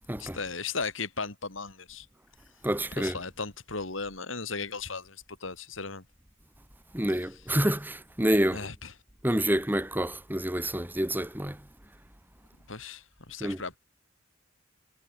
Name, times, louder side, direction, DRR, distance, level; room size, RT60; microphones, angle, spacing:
voice 1, 0.2-2.1 3.0-6.0 8.5-8.9 12.7-13.8, left 4 dB, 80° left, 4.1 m, -36 dB
voice 2, 2.6-3.1 6.9-8.7 9.2-11.6 13.4-13.6, right 1 dB, 10° right, 2.2 m, -28 dB
head